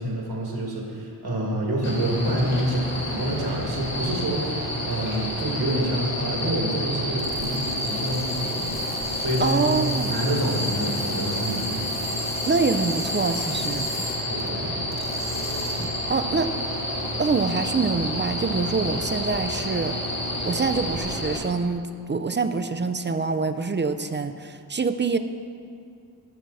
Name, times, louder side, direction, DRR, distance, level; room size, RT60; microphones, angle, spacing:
voice 1, 0.0-4.5 4.9-9.7 10.1-11.8 14.3-14.7, right 1 dB, 75° right, -1 dB, 2.2 m, -27 dB
sound 1, 1.8-21.4, left 1 dB, 45° left, 2.5 m, -29 dB
sound 2, 7.2-14.5 14.9-16.1, left 1 dB, 15° left, 1.2 m, -39 dB
voice 2, 9.4-10.2 12.5-14.1 15.8-16.5 17.2-19.9 20.4-25.2, right 4 dB, 30° right, 8 dB, 0.5 m, -25 dB
13.5 x 6.1 x 4.1 m, 2.4 s
cardioid pair, 65°, 38 cm